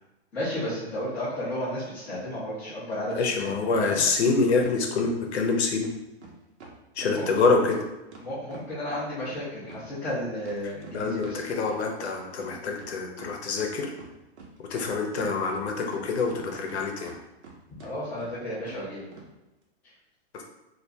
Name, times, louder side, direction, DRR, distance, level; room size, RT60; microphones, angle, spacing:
voice 1, 0.3-3.5 3.8-4.0 7.1-7.3 8.2-11.4 17.7-19.0, left 1 dB, 5° left, -12 dB, 0.5 m, -33 dB
voice 2, 3.1-5.9 6.9-7.8 10.9-13.9 14.7-17.1 20.3-20.4, left 4 dB, 75° left, 2 dB, 0.8 m, -26 dB
sound 1, 3.1-3.2 3.5-5.2 5.4-5.5 5.8-6.0 6.2-6.3 6.6-9.0 9.3-12.1 12.4-12.5 12.8-13.7 14.0-14.9 15.1-16.8 17.0-17.5 17.8-17.9 18.2-18.3 18.7-18.8 19.1-19.3, right 4 dB, 80° right, 0.9 m, -46 dB
2.7 x 2.5 x 3.3 m, 1.0 s
hypercardioid pair, 170°, 33 cm